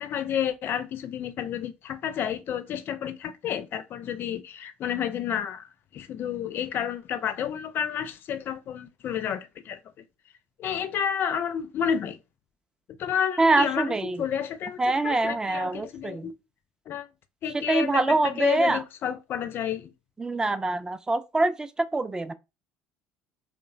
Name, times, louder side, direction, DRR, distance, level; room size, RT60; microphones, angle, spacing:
voice 1, 0.0-9.8 10.6-12.2 13.0-16.3 16.9-17.1 17.4-19.9, left 8 dB, 50° left, 0.4 m, -30 dB
voice 2, 13.4-14.2 14.8-16.3 17.5-18.8 20.2-22.3, right 2 dB, 15° right, 0.3 m, -25 dB
3.0 x 2.1 x 2.4 m
hypercardioid pair, 65°, 5 cm